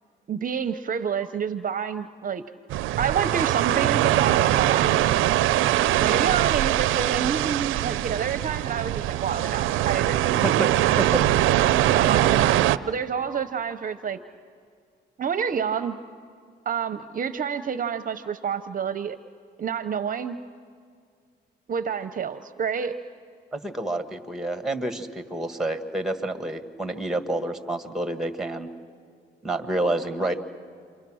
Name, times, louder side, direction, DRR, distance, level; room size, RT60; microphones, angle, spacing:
voice 1, 0.3-2.4 3.0-5.0 6.0-10.2 11.9-14.2 15.2-16.0 16.7-19.2 19.6-20.4 21.7-23.0, right 7 dB, 45° right, 11 dB, 0.7 m, -28 dB
sound 1, 2.7-12.8, right 13 dB, 85° right, 0.5 m, -22 dB
voice 2, 10.4-11.5 23.5-28.7 29.4-30.3, right 1 dB, ahead, 8 dB, 1.7 m, -29 dB
29.0 x 25.0 x 6.3 m, 2.1 s
cardioid pair, 90°, 20 cm